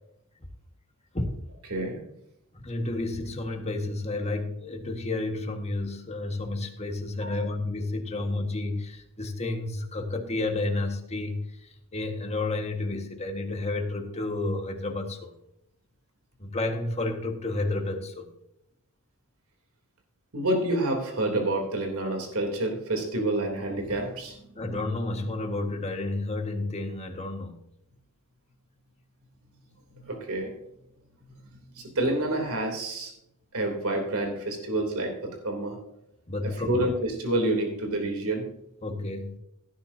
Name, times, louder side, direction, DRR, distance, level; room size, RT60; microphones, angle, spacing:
voice 1, 2.6-15.3 16.4-18.3 24.6-27.6 36.3-36.7 38.8-39.4, left 2 dB, 30° left, 4 dB, 1.7 m, -31 dB
voice 2, 7.2-7.5 20.3-24.6 29.9-30.5 31.7-33.1 33.5-35.8 36.4-38.5, right 1 dB, 80° right, 3 dB, 3.3 m, -28 dB
17.0 x 10.0 x 2.8 m, 0.80 s
head